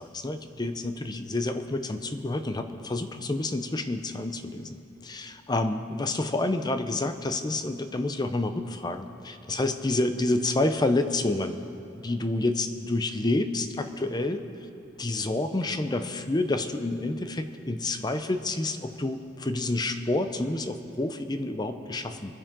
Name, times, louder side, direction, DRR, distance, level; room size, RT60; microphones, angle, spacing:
voice 1, 0.0-11.6 12.0-14.4 15.0-22.3, left 2 dB, 20° left, 8 dB, 0.6 m, -29 dB
25.0 x 10.0 x 3.7 m, 2.9 s
head